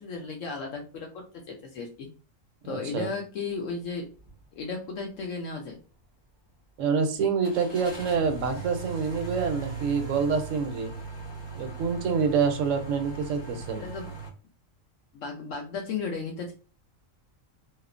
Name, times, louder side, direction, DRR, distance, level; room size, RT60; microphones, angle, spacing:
voice 1, 0.0-2.1 2.6-4.1 4.6-5.8 13.7-14.1 15.1-16.5, left 4 dB, 75° left, 1 dB, 0.9 m, -35 dB
voice 2, 2.7-3.1 6.8-10.9 11.5-13.8, right 5 dB, 75° right, 7 dB, 0.9 m, -27 dB
sound 1, 4.2-4.4 4.8-4.9 7.4-14.3, right 5 dB, 20° left, 0.9 m, -39 dB
2.9 x 2.0 x 2.4 m, 0.37 s
omnidirectional pair, 1.4 m